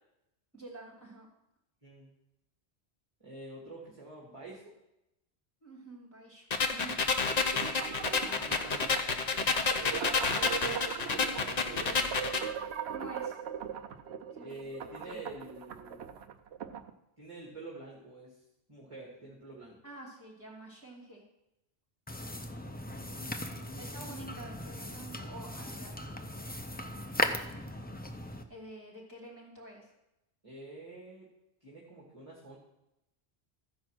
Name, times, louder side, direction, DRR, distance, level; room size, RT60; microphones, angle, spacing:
voice 1, 0.5-1.3 5.6-7.0 12.8-13.4 14.3-14.6 15.0-15.3 19.8-21.2 23.8-26.2 28.5-29.8, right 2 dB, 10° right, -3 dB, 3.3 m, -48 dB
voice 2, 3.2-4.7 7.7-9.2 11.3-12.2 14.4-16.2 17.2-18.4 18.7-19.8 22.8-24.3 30.4-31.3 31.6-32.6, right 2 dB, 30° right, -4 dB, 1.8 m, -48 dB
sound 1, 6.5-12.5, left 4 dB, 45° left, 0.7 m, -30 dB
sound 2, 7.3-16.9, right 8 dB, 75° right, 0.9 m, -40 dB
sound 3, 22.1-28.4, left 1 dB, 15° left, 0.4 m, -38 dB
14.0 x 4.8 x 6.1 m, 0.87 s
omnidirectional pair, 1.1 m